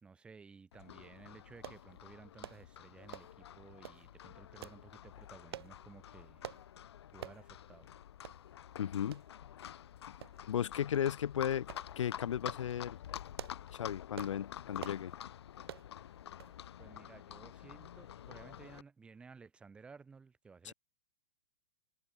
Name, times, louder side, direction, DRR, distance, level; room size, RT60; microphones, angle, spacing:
voice 1, 0.0-6.5 7.1-7.9 16.8-20.7, right 5 dB, 5° right, 3.4 m, -56 dB
Livestock farm animals working animals, 0.7-18.8, left 10 dB, 60° left, 4.5 m, -49 dB
sound 1, 1.6-1.8 2.4-2.6 3.1-3.4 3.8-4.0 4.6-4.8 5.5-5.7 6.4-6.6 7.2-7.4 7.8-7.9 8.2-8.4 9.1-9.3 10.2-10.6 10.9-11.1 11.7-11.9 12.3-12.7 13.2-13.7 14.1-14.4 14.8-15.0 15.7-15.9 16.4-16.6 16.9-17.0, right 11 dB, 55° right, 1.0 m, -47 dB
voice 2, 8.8-9.2 10.5-11.7 11.9-13.0 13.7-15.1 20.6-20.7, left 9 dB, 85° left, 1.6 m, -35 dB
hypercardioid pair, 175°, 15 cm